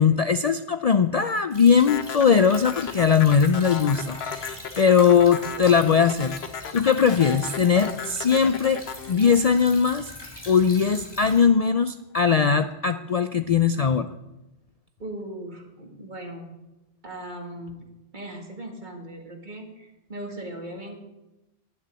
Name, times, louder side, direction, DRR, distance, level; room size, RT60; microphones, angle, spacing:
voice 1, 0.0-6.4 6.7-8.8 9.1-10.1 10.5-14.1, left 6 dB, 50° left, 10 dB, 0.5 m, -20 dB
Stream / Trickle dribble, 1.5-11.4, left 1 dB, 25° left, 3.2 m, -43 dB
sound 1, 1.9-10.2, left 7 dB, 75° left, 1.2 m, -35 dB
voice 2, 15.0-16.5 17.0-21.0, right 1 dB, 45° right, 2 dB, 2.3 m, -39 dB
10.5 x 9.7 x 9.0 m, 1.0 s
omnidirectional pair, 1.1 m